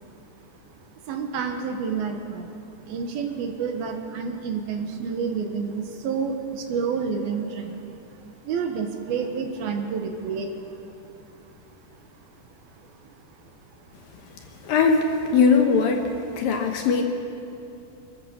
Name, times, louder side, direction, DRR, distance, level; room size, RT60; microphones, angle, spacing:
voice 1, 1.0-2.5 2.8-10.9 11.3-11.5 11.9-12.0 12.8-13.2 13.8-13.9 14.5-14.6, right 5 dB, 70° right, 4 dB, 3.0 m, -30 dB
voice 2, 14.6-15.1 15.3-16.1 16.4-17.0, left 5 dB, 65° left, 4 dB, 2.5 m, -19 dB
26.0 x 14.0 x 7.1 m, 2.9 s
omnidirectional pair, 4.8 m